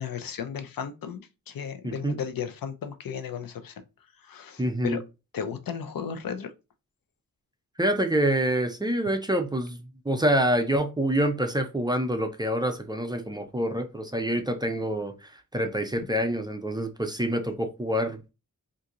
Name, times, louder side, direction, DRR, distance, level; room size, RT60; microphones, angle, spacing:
voice 1, 0.0-3.8 4.2-5.1 5.3-6.5 16.0-16.1, left 7 dB, 85° left, 0.6 m, -35 dB
voice 2, 1.8-2.2 4.6-5.0 7.8-18.3, right 1 dB, 15° right, 0.4 m, -27 dB
2.8 x 2.6 x 3.6 m
wide cardioid pair, 130°, 33 cm